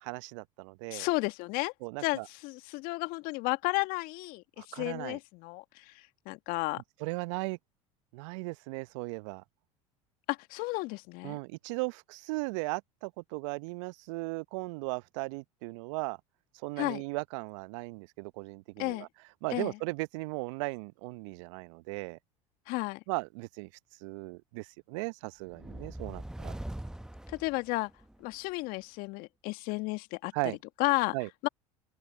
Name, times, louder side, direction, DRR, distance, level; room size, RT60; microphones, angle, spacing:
voice 1, 0.0-1.1 1.8-2.3 4.6-5.2 7.0-7.6 8.1-9.4 11.2-16.2 16.6-19.1 19.4-22.2 23.1-23.7 24.0-26.6 30.3-30.6 31.1-31.3, right 27 dB, 65° right, 0.9 m, -37 dB
voice 2, 0.9-1.7 2.0-6.8 10.3-11.4 16.8-17.0 18.8-19.1 19.5-19.8 22.7-23.0 27.3-27.9 28.2-30.3 30.8-31.2 31.4-31.5, left 23 dB, 55° left, 1.9 m, -33 dB
sound 1, 25.5-28.2, right 1 dB, 5° right, 0.9 m, -42 dB
open air
hypercardioid pair, 75°, 17 cm